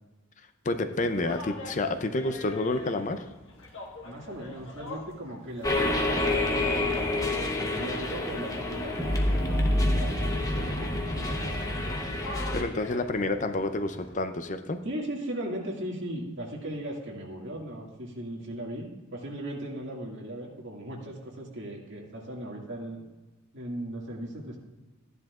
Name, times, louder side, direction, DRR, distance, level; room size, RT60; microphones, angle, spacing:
voice 1, 0.6-3.3 12.5-14.8, left 2 dB, 35° left, 9 dB, 0.5 m, -29 dB
sound 1, 0.9-14.2, left 3 dB, 65° left, 1.4 m, -41 dB
voice 2, 4.0-11.4 14.8-23.0 23.5-24.6, right 1 dB, 60° right, -1 dB, 2.0 m, -38 dB
sound 2, 5.6-12.6, left 1 dB, 15° left, 0.9 m, -28 dB
13.5 x 10.5 x 2.4 m, 1.2 s
head